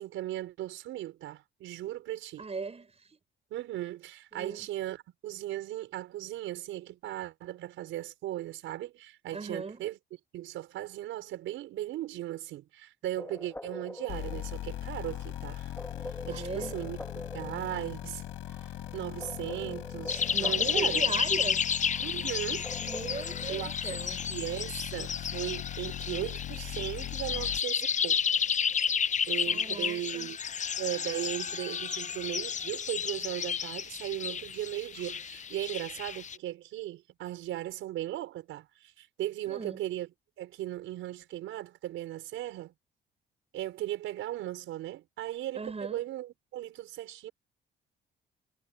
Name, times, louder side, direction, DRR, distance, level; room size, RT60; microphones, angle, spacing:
voice 1, 0.0-2.4 3.5-10.0 10.3-15.7 16.3-17.0 17.3-18.2 18.6-21.0 22.0-22.7 23.5-28.2 29.3-30.4 30.8-40.1 40.4-42.7 43.5-47.3, right 14 dB, 90° right, 5.5 m, -37 dB
voice 2, 2.4-3.2 4.3-4.7 9.3-9.8 16.3-16.7 20.3-21.6 22.8-24.2 29.5-30.4 39.5-39.8 45.6-46.0, right 4 dB, 30° right, 7.1 m, -38 dB
sound 1, 13.2-23.5, left 1 dB, 10° left, 2.7 m, -45 dB
sound 2, 14.1-27.6, left 13 dB, 85° left, 4.6 m, -40 dB
sound 3, 20.1-36.4, left 7 dB, 40° left, 0.7 m, -32 dB
cardioid pair, 90°, 20 cm